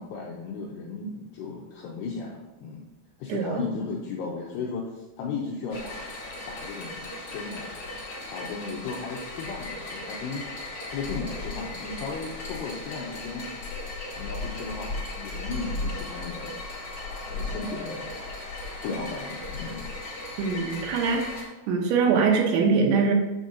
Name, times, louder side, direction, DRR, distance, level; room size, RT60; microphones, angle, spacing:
voice 1, 0.0-2.9 3.2-6.0 6.5-7.7 8.3-10.5 10.9-13.5 14.2-16.5 17.3-18.1 18.8-19.9, left 4 dB, 90° left, -2 dB, 2.4 m, -35 dB
sound 1, 5.7-21.4, left 2 dB, 35° left, 2.4 m, -36 dB
voice 2, 20.4-21.3 21.7-23.1, right 5 dB, 75° right, 1 dB, 3.2 m, -23 dB
9.2 x 6.4 x 2.8 m, 1.1 s
omnidirectional pair, 5.7 m